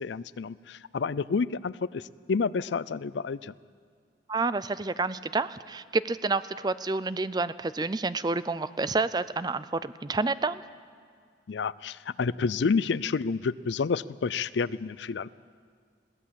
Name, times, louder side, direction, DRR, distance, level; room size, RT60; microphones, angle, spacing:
voice 1, 0.0-2.0 2.3-3.5 11.5-15.3, left 5 dB, 75° left, 19 dB, 0.4 m, -29 dB
voice 2, 4.3-10.6, right 3 dB, 20° right, 15 dB, 0.4 m, -29 dB
21.5 x 16.5 x 7.5 m, 2.1 s
head